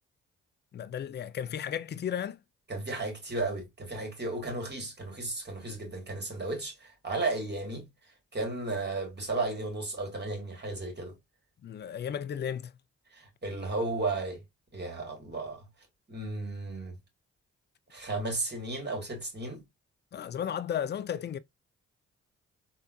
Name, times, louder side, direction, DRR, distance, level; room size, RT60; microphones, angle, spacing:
voice 1, 0.7-2.4 11.6-12.7 20.1-21.4, left 9 dB, 35° left, 0.4 m, -34 dB
voice 2, 2.7-7.9 8.3-11.2 13.1-14.4 14.7-15.7 16.1-16.9 17.9-19.6, right 2 dB, 30° right, 1.9 m, -34 dB
3.5 x 2.3 x 2.6 m
hypercardioid pair, 45°, 33 cm